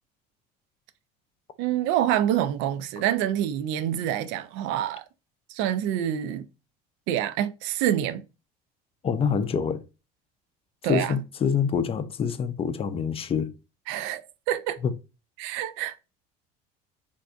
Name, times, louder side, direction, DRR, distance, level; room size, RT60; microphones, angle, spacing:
voice 1, 1.6-5.0 5.5-6.5 7.1-8.2 10.8-11.2 13.9-14.2 14.5-14.8 15.4-16.0, right 11 dB, 70° right, 0.4 m, -26 dB
voice 2, 9.0-9.8 10.9-13.5 14.8-14.9, left 6 dB, 30° left, 0.4 m, -26 dB
3.4 x 2.6 x 2.4 m
supercardioid pair, 90°, 20 cm